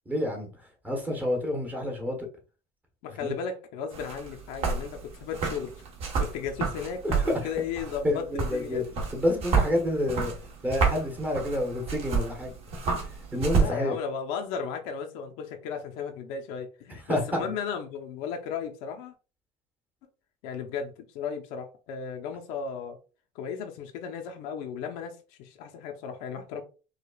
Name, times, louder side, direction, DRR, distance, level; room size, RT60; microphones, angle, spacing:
voice 1, 0.1-0.5 0.8-2.2 3.2-3.3 7.0-7.1 7.4-7.5 8.0-8.8 9.1-10.3 10.6-12.5 13.3-14.0 17.1-17.4, left 1 dB, 10° right, 1.0 m, -28 dB
voice 2, 3.0-5.7 6.2-8.8 13.5-19.1 20.4-23.0 23.3-26.6, left 6 dB, 75° left, 0.7 m, -35 dB
sound 1, 3.9-13.7, right 5 dB, 45° right, 1.2 m, -30 dB
4.9 x 2.4 x 2.3 m
cardioid pair, 145°, 15 cm